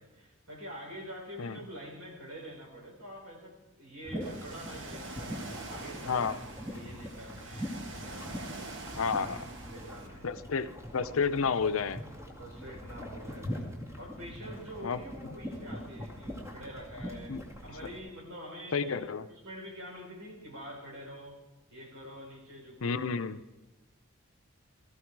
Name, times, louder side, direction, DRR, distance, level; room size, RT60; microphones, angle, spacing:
voice 1, 0.0-5.4 5.7-8.5 9.1-10.3 12.4-13.5 14.0-21.4 21.7-23.3, equal, 90° right, -1 dB, 4.6 m, -46 dB
sound 1, 4.0-18.0, equal, 10° right, 2.2 m, -42 dB
Ocean, 4.2-10.1, right 2 dB, 55° right, 1.4 m, -45 dB
voice 2, 9.0-9.4 10.2-12.0 14.8-15.0 17.3-17.4 18.7-19.2 22.8-23.4, left 5 dB, 75° left, 12 dB, 0.6 m, -30 dB
18.0 x 14.5 x 4.7 m, 1.0 s
head